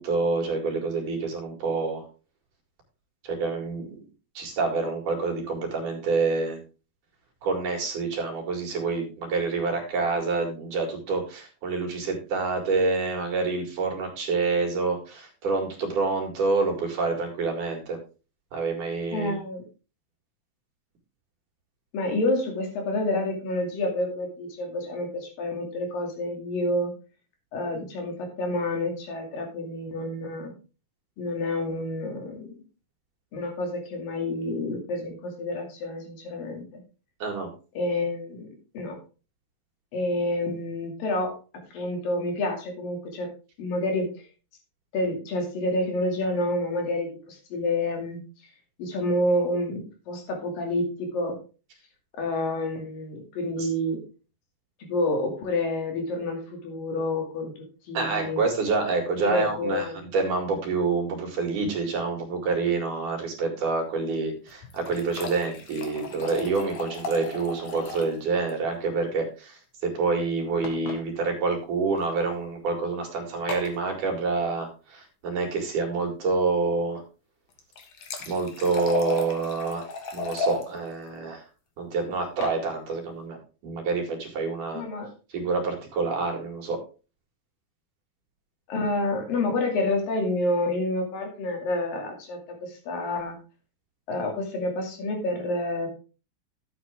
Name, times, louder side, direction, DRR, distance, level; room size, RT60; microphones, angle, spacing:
voice 1, 0.0-2.0 3.2-4.0 4.4-6.6 7.4-18.0 18.5-19.4 37.2-37.5 53.6-53.7 57.9-77.0 78.3-79.9 80.1-81.4 81.8-83.4 83.6-84.8 85.3-86.8, right 4 dB, 60° right, 2 dB, 3.7 m, -27 dB
voice 2, 19.1-19.6 21.9-26.9 27.5-30.5 31.2-32.5 33.3-36.8 37.8-38.5 38.7-39.0 39.9-41.3 41.7-43.3 43.6-44.1 44.9-48.2 48.8-51.4 52.2-54.0 54.8-58.4 59.2-60.0 84.7-85.1 88.7-93.4 94.1-95.9, left 1 dB, 75° left, 3 dB, 4.1 m, -28 dB
sound 1, 64.5-68.2 68.5-68.6 68.8-68.9 70.6-71.0 72.0-72.1 73.5-73.8 77.5-80.6 82.1-82.6, left 4 dB, 55° left, 2.6 m, -35 dB
12.0 x 7.9 x 3.6 m, 0.33 s
omnidirectional pair, 4.1 m